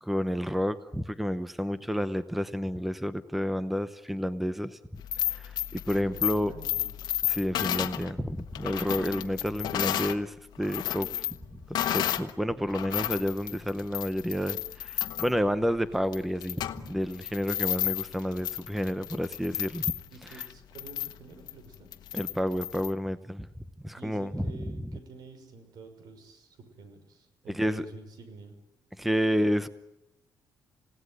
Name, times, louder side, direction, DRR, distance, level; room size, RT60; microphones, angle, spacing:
voice 1, 0.0-4.8 5.3-6.5 7.3-11.3 11.7-19.9 20.3-20.4 22.1-23.5 23.8-24.5 27.5-27.8 29.0-29.7, equal, ahead, 13 dB, 0.8 m, -30 dB
sound 1, 5.0-10.2 10.5-12.3 12.7-22.9, left 12 dB, 80° left, 1.3 m, -33 dB
voice 2, 6.1-6.9 20.1-21.9 23.9-28.6, right 3 dB, 70° right, 8 dB, 5.9 m, -48 dB
28.0 x 18.0 x 9.6 m, 0.96 s
cardioid pair, 140°, 7 cm